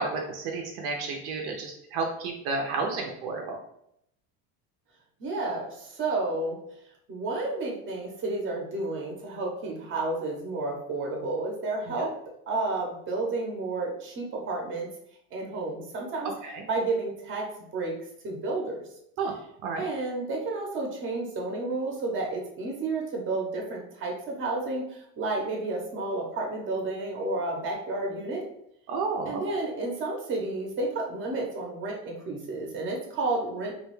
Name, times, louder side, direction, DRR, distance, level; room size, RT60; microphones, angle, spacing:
voice 1, 0.0-3.6 11.9-12.0 16.4-16.6 19.2-19.3 19.6-19.9 28.9-29.6, right 4 dB, 70° right, 1 dB, 0.6 m, -31 dB
voice 2, 5.2-6.6 7.1-12.1 12.5-14.9 15.3-16.3 16.7-17.5 17.7-17.9 18.2-18.8 19.8-28.4 29.2-33.7, right 2 dB, 30° right, -1 dB, 0.7 m, -31 dB
2.4 x 2.3 x 3.0 m, 0.74 s
cardioid pair, 140°, 39 cm